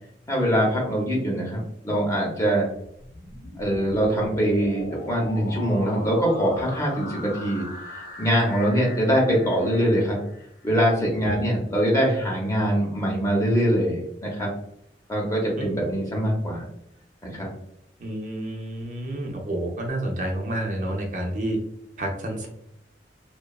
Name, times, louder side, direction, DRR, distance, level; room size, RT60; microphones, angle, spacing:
voice 1, 0.3-2.7 3.6-7.6 7.9-10.2 10.6-14.5 15.1-16.6 17.3-17.5, equal, 20° left, -2 dB, 0.7 m, -23 dB
sound 1, 2.8-10.7, left 2 dB, 65° left, 0.8 m, -40 dB
voice 2, 18.0-21.6 22.0-22.5, right 1 dB, 45° right, 1 dB, 0.5 m, -29 dB
2.7 x 2.3 x 2.2 m, 0.76 s
head